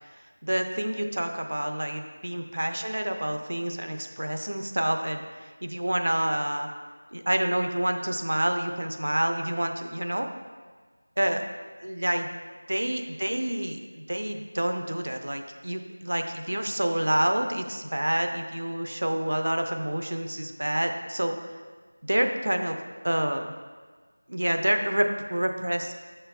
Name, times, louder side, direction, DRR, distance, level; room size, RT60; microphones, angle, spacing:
voice 1, 0.4-5.2 5.6-6.7 7.1-10.3 11.2-11.4 11.8-12.3 12.7-21.4 22.0-22.8 23.0-23.5 24.3-25.9, right 1 dB, 60° right, 5 dB, 0.6 m, -28 dB
6.9 x 6.6 x 2.3 m, 1.4 s
figure-of-eight pair, 180°, 0 cm